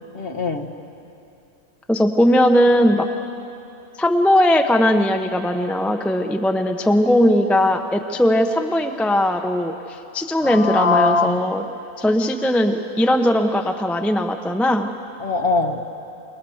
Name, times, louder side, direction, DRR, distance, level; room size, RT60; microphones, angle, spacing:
voice 1, 0.1-0.7 10.4-11.4 15.2-15.8, left 4 dB, 40° left, 2 dB, 1.5 m, -21 dB
voice 2, 1.9-3.1 4.0-9.7 10.1-11.6 12.0-14.9, left 1 dB, ahead, 5 dB, 0.6 m, -18 dB
27.5 x 20.0 x 7.2 m, 2.7 s
omnidirectional pair, 1.6 m